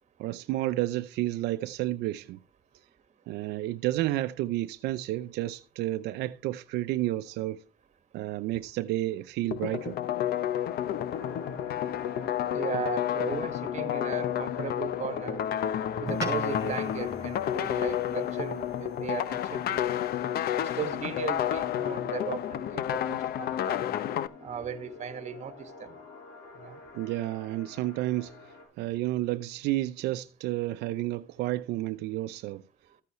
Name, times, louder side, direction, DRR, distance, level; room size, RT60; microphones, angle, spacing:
voice 1, 0.2-2.4 3.3-7.6 8.1-10.0 26.9-32.6, right 15 dB, 85° right, 0.6 m, -31 dB
sound 1, 9.5-24.3, left 11 dB, 65° left, 0.8 m, -30 dB
sound 2, 11.1-28.7, left 5 dB, 90° left, 6.1 m, -47 dB
voice 2, 12.5-15.4 16.0-19.9 20.8-23.8 24.4-25.5 25.8-25.9 26.6-26.8, right 7 dB, 45° right, 1.7 m, -37 dB
sound 3, 16.1-20.7, right 3 dB, 20° right, 4.7 m, -42 dB
14.0 x 8.1 x 3.1 m
cardioid pair, 110°, 17 cm